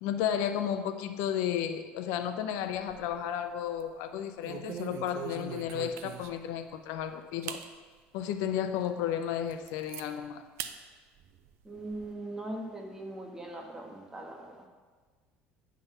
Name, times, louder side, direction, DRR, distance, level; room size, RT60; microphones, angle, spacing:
voice 1, 0.0-7.6 8.1-10.5, left 9 dB, 75° left, 9 dB, 0.6 m, -33 dB
sound 1, 2.6-3.3 3.7-3.9 4.4-6.5 7.0-7.1 7.4-7.7 8.2-8.3 8.8-8.9 9.2-10.1 10.6-10.8 11.2-12.1, right 9 dB, 65° right, 0.5 m, -42 dB
voice 2, 11.6-14.7, right 1 dB, 15° right, 2 dB, 1.3 m, -40 dB
9.4 x 3.8 x 5.5 m, 1.5 s
supercardioid pair, 90°, 5 cm